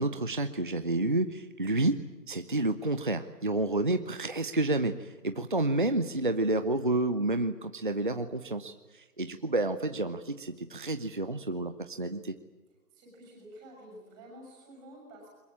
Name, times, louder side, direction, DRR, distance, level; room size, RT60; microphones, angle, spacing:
voice 1, 0.0-2.0 2.3-12.3, right 2 dB, 30° right, 9 dB, 0.8 m, -30 dB
voice 2, 12.9-15.3, right 1 dB, 10° right, 0 dB, 6.4 m, -50 dB
22.5 x 22.0 x 8.7 m, 1.2 s
figure-of-eight pair, 165°, 48 cm